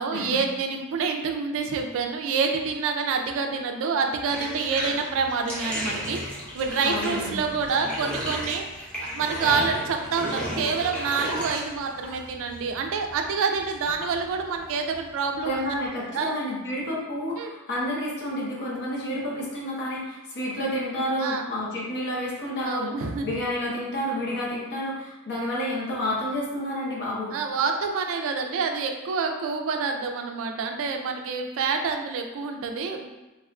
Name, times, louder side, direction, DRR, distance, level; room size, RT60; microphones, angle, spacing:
voice 1, 0.0-6.2 6.5-15.7 16.1-16.3 17.4-17.5 21.2-21.5 22.6-23.3 27.3-33.1, right 5 dB, 65° right, 5 dB, 0.3 m, -27 dB
Bathtub (filling or washing), 4.2-15.9, equal, 5° left, 0.6 m, -35 dB
voice 2, 6.8-7.4 15.4-27.3, left 1 dB, 55° left, -4 dB, 0.8 m, -30 dB
3.4 x 2.4 x 2.2 m, 1.1 s
head